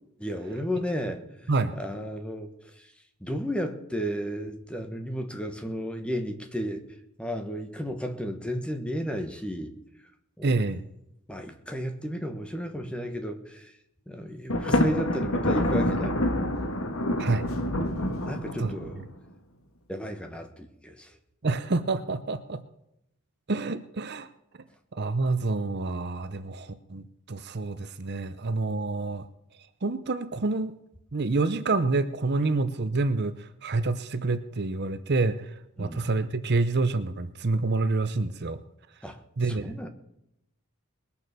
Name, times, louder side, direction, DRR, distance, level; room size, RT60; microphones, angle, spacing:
voice 1, 0.2-2.9 3.2-6.8 7.2-9.7 10.4-10.5 11.3-13.7 14.1-16.2 18.3-19.0 19.9-21.1 35.8-36.0 39.0-39.2 39.5-39.9, equal, 5° left, 6 dB, 1.2 m, -33 dB
voice 2, 10.4-10.8 17.2-17.5 18.6-18.7 21.4-22.6 23.5-24.3 24.9-29.3 29.8-30.8 31.1-38.6 39.4-39.8, right 3 dB, 50° right, 11 dB, 0.7 m, -28 dB
Thunder, 14.5-19.1, left 1 dB, 65° left, 1.5 m, -27 dB
21.0 x 7.0 x 6.7 m, 0.81 s
head